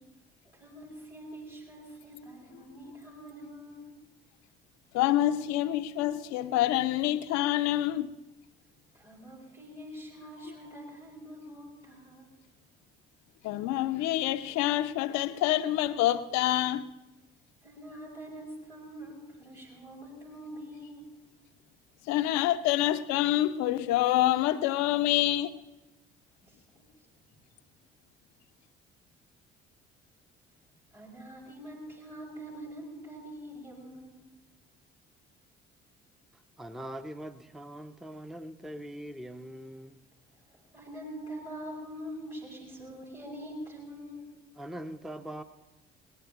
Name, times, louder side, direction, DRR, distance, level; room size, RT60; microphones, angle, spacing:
voice 1, 0.4-3.9 8.9-12.3 17.6-21.1 26.4-26.6 30.9-34.2 40.5-44.3, equal, 90° right, 4.7 m, -44 dB
voice 2, 4.9-8.1 13.4-16.9 22.1-25.5, left 14 dB, 55° left, 0.7 m, -27 dB
voice 3, 36.6-40.0 44.6-45.4, right 1 dB, ahead, 0.7 m, -42 dB
21.5 x 18.5 x 2.9 m
figure-of-eight pair, 50°, 32 cm